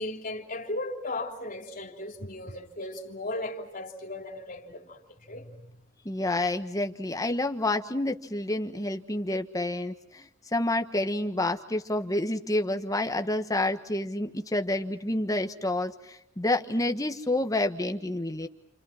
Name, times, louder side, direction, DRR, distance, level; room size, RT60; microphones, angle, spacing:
voice 1, 0.0-5.5, left 2 dB, 45° left, 3.2 m, -36 dB
voice 2, 6.0-10.2 10.5-15.9 16.4-18.5, left 1 dB, 20° left, 1.4 m, -28 dB
29.0 x 27.5 x 5.9 m
head